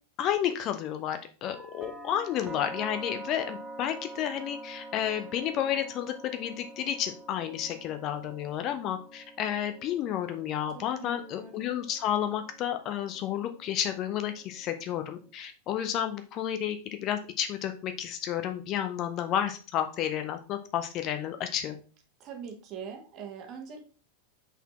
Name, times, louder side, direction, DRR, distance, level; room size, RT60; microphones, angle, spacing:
voice 1, 0.2-16.8 17.0-21.8, left 10 dB, 35° left, 8 dB, 0.7 m, -31 dB
sound 1, 1.4-15.3, right 2 dB, 15° right, 0.8 m, -46 dB
voice 2, 10.7-11.7 22.2-23.8, right 6 dB, 35° right, 4 dB, 1.3 m, -42 dB
5.5 x 4.2 x 4.2 m, 0.36 s
figure-of-eight pair, 90°, 0 cm